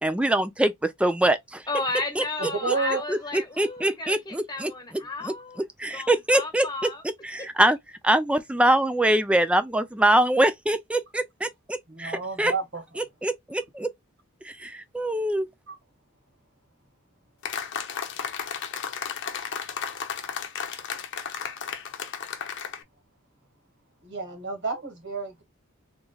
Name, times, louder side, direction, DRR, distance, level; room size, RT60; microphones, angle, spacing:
voice 1, 0.0-1.6 2.2-2.3 2.7-2.8 3.1-3.2 3.6-4.7 5.2-5.3 5.8-6.9 7.2-7.8 8.0-12.5 13.2-13.9 14.4-15.5, right 1 dB, 5° right, 0.3 m, -23 dB
voice 2, 1.7-7.0 7.4-7.5, left 2 dB, 20° left, 1.3 m, -33 dB
voice 3, 2.4-3.0 11.9-13.0 15.7-15.8 24.0-25.4, right 4 dB, 60° right, 1.7 m, -31 dB
sound 1, 17.4-22.8, left 7 dB, 60° left, 0.7 m, -34 dB
3.5 x 3.1 x 2.2 m
head